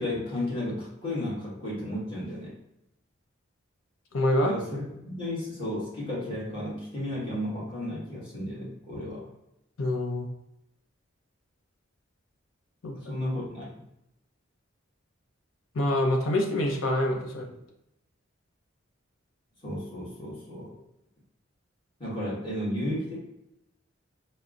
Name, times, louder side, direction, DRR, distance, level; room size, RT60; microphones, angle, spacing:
voice 1, 0.0-2.6 4.4-9.2 12.9-13.6 19.6-20.7 22.0-23.2, left 1 dB, 25° left, -7 dB, 1.3 m, -33 dB
voice 2, 4.1-4.5 9.8-10.3 12.8-13.0 15.7-17.5, left 1 dB, 85° left, 1 dB, 0.6 m, -26 dB
4.2 x 2.0 x 2.4 m, 0.85 s
head